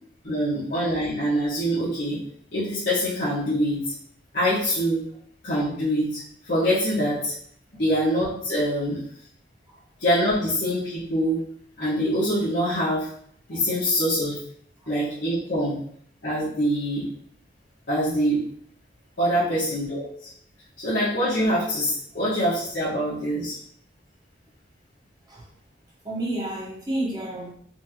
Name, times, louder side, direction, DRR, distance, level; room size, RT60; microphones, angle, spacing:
voice 1, 0.2-2.2 2.5-3.9 4.3-5.0 5.4-7.3 7.8-9.0 10.0-11.4 11.8-13.1 13.5-14.4 14.9-15.8 16.2-17.1 17.9-18.4 19.2-20.0 20.8-23.6, equal, 75° left, -12 dB, 1.6 m, -24 dB
voice 2, 26.0-27.5, right 1 dB, 20° right, -5 dB, 1.2 m, -31 dB
4.4 x 2.9 x 3.0 m, 0.63 s
head